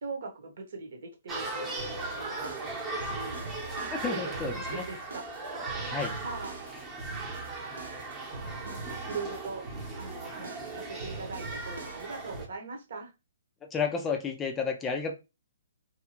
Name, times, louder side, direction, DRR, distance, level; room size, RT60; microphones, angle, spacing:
voice 1, 0.0-3.4 3.8-5.3 6.2-6.6 8.6-9.7 10.0-13.1, right 4 dB, 65° right, 1.0 m, -41 dB
sound 1, 1.3-12.4, right 3 dB, 15° right, 0.8 m, -38 dB
sound 2, 1.8-12.5, right 3 dB, 90° right, 1.1 m, -43 dB
voice 2, 3.9-4.8 5.8-6.1 13.7-15.2, left 5 dB, 15° left, 0.4 m, -31 dB
2.7 x 2.3 x 2.9 m
hypercardioid pair, 150°, 0 cm